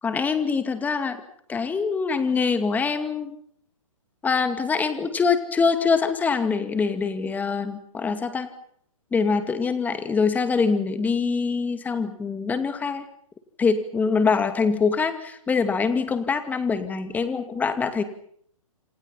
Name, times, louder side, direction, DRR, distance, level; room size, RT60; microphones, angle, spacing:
voice 1, 0.0-1.2 1.5-3.4 4.2-8.5 9.1-13.1 13.6-18.0, left 5 dB, 10° left, 10 dB, 2.4 m, -24 dB
27.5 x 27.0 x 5.8 m, 0.66 s
hypercardioid pair, 145°, 18 cm